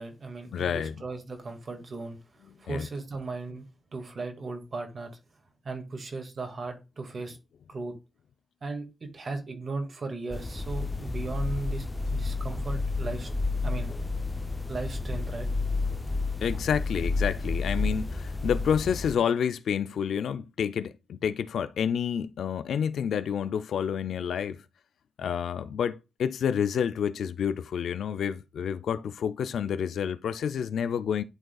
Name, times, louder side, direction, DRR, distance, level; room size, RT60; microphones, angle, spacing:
voice 1, 0.0-3.6 3.9-5.1 5.6-7.4 7.7-8.0 8.6-13.3 13.6-13.9 14.7-15.5, right 3 dB, 60° right, 1.9 m, -37 dB
voice 2, 0.5-1.0 2.7-2.9 16.4-24.6 25.2-31.2, left 8 dB, 90° left, 0.4 m, -29 dB
sound 1, 10.3-19.2, left 3 dB, 25° left, 0.5 m, -31 dB
11.5 x 3.9 x 2.3 m
cardioid pair, 65°, 0 cm